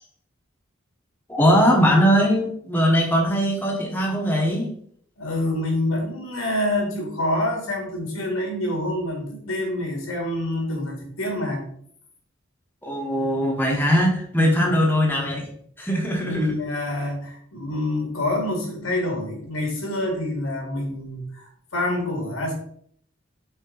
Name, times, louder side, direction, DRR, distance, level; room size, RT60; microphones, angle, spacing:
voice 1, 1.3-4.7 12.8-15.4 15.8-16.5, equal, 10° left, -1 dB, 1.0 m, -20 dB
voice 2, 5.2-11.6 14.4-14.7 16.2-22.5, left 1 dB, 90° left, 1 dB, 2.1 m, -27 dB
5.5 x 4.5 x 3.8 m, 0.64 s
head